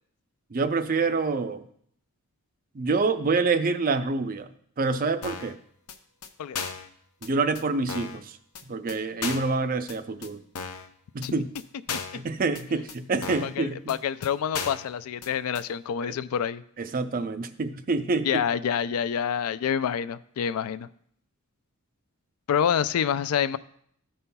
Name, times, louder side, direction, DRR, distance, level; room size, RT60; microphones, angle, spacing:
voice 1, 0.5-1.6 2.7-4.5 4.8-5.5 7.2-8.4 8.7-10.4 11.1-11.5 12.1-13.9 16.8-18.3, right 3 dB, 40° right, 0.5 m, -26 dB
sound 1, 5.2-5.6 5.9-6.0 6.2-6.3 6.6-6.9 7.2-7.3 7.6-7.7 7.9-8.2 8.6-8.7 8.9-9.0 9.2-9.5 9.9-10.0 10.2-10.3 10.6-10.9 11.2-11.3 11.6-11.7 11.9-12.2 12.6-12.7 12.9-13.0 13.2-13.6 13.9-14.0 14.2-14.3 14.5-14.9 15.2-15.3 15.6-15.7, left 5 dB, 90° left, 0.7 m, -35 dB
voice 2, 13.4-16.6 18.2-20.9 22.5-23.6, left 8 dB, 75° left, 0.3 m, -27 dB
14.0 x 5.5 x 2.2 m
head